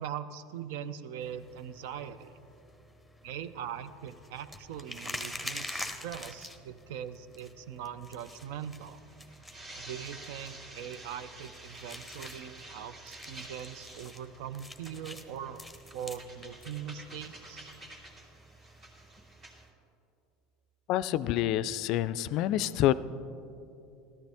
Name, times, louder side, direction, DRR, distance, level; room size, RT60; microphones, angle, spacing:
voice 1, 0.0-2.3 3.2-9.0 9.8-15.6 15.9-17.7, right 9 dB, 65° right, 13 dB, 0.5 m, -41 dB
sound 1, 1.2-19.7, left 1 dB, ahead, 1.0 m, -47 dB
sound 2, 8.2-19.6, right 1 dB, 40° right, 2.3 m, -50 dB
voice 2, 20.9-22.9, left 13 dB, 55° left, 16 dB, 0.3 m, -27 dB
14.0 x 13.0 x 3.5 m, 2.7 s
hypercardioid pair, 80°, 0 cm